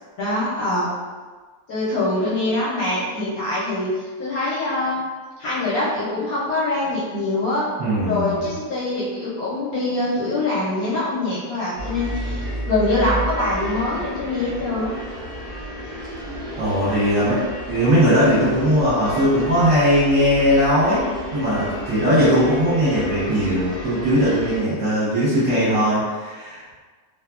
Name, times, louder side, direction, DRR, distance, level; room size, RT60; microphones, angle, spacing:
voice 1, 0.2-0.9 1.7-3.9 4.2-5.0 5.4-7.6 8.0-15.0, left 2 dB, 65° left, -8 dB, 0.9 m, -24 dB
voice 2, 7.8-8.4 16.6-17.4 17.7-21.1 21.3-26.6, equal, 55° right, -11 dB, 1.1 m, -19 dB
sound 1, 11.8-24.6, equal, 40° left, 0.8 m, -32 dB
2.7 x 2.4 x 2.3 m, 1.4 s
omnidirectional pair, 2.0 m